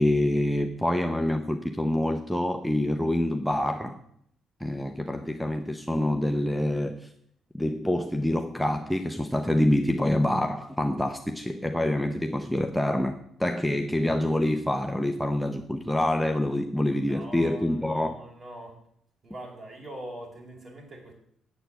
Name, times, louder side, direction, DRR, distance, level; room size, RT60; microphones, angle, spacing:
voice 1, 0.0-4.0 4.6-7.1 7.5-18.2, left 1 dB, ahead, 5 dB, 0.8 m, -26 dB
voice 2, 17.1-18.7 19.2-21.1, right 1 dB, 35° right, -1 dB, 5.2 m, -42 dB
8.4 x 8.2 x 7.8 m, 0.70 s
cardioid pair, 90°, 0 cm